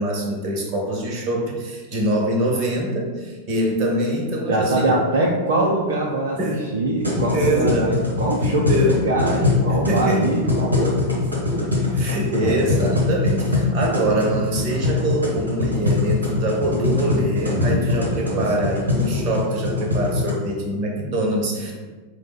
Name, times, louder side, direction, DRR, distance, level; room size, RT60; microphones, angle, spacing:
voice 1, 0.0-4.9 6.4-6.6 7.3-7.9 8.7-8.9 9.7-10.3 11.9-21.8, right 1 dB, 40° right, 0 dB, 0.8 m, -24 dB
voice 2, 4.5-12.8 17.5-17.9 18.3-18.7, right 2 dB, 65° right, -3 dB, 0.5 m, -24 dB
sound 1, 7.0-20.3, left 3 dB, 80° right, 0.9 m, -23 dB
4.5 x 2.0 x 3.4 m, 1.3 s
figure-of-eight pair, 90°, 0 cm